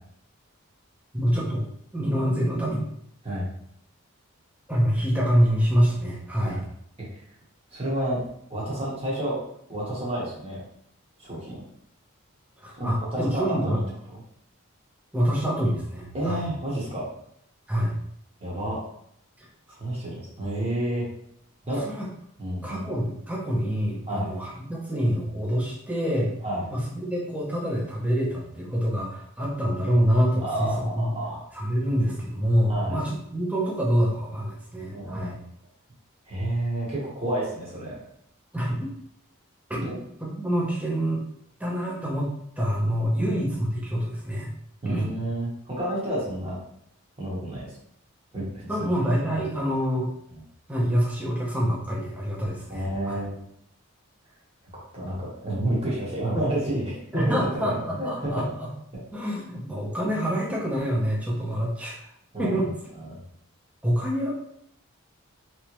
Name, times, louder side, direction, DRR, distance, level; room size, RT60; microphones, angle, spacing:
voice 1, 1.1-1.7 1.9-2.9 4.7-6.6 12.6-13.8 15.1-16.4 17.7-17.9 19.4-19.5 21.6-22.1 22.6-26.3 26.7-31.1 31.5-35.4 38.5-38.9 39.7-39.8 40.2-41.2 41.6-44.5 44.8-45.0 48.7-50.1 50.7-53.2 57.1-58.7 59.1-62.1 62.4-62.7 63.8-64.5, equal, 5° right, -4 dB, 0.7 m, -26 dB
voice 2, 7.7-8.2 8.5-9.4 9.7-10.6 11.2-11.6 12.7-13.8 14.1-14.2 16.1-17.1 18.4-18.8 19.7-21.1 21.7-21.8 22.4-22.9 24.1-24.3 26.4-26.6 30.4-31.5 32.7-33.0 34.9-35.4 36.2-38.0 39.8-39.9 43.2-43.4 44.8-46.6 47.2-47.8 48.3-48.7 49.3-49.4 50.3-50.4 52.7-53.4 54.9-58.5 62.3-62.7 62.9-63.2, right 1 dB, 25° right, -6 dB, 1.2 m, -30 dB
3.3 x 3.0 x 3.0 m, 0.71 s
head